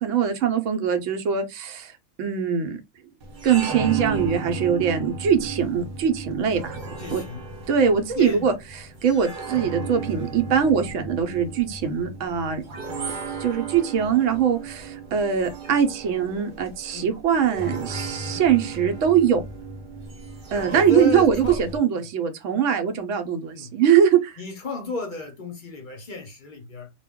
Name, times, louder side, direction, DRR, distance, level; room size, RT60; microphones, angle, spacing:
voice 1, 0.0-1.9 2.2-2.8 3.4-6.8 7.1-7.2 7.7-8.5 9.0-12.6 13.4-19.4 20.5-24.4, right 7 dB, 85° right, 0.9 m, -22 dB
sound 1, 3.2-21.8, right 4 dB, 55° right, 0.8 m, -35 dB
voice 2, 7.0-7.4 8.1-8.5 10.2-10.3 12.9-13.1 16.9-17.1 18.3-18.4 20.7-21.6 23.5-23.7 24.4-26.9, left 2 dB, 50° left, 0.7 m, -33 dB
2.2 x 2.1 x 3.5 m
omnidirectional pair, 1.3 m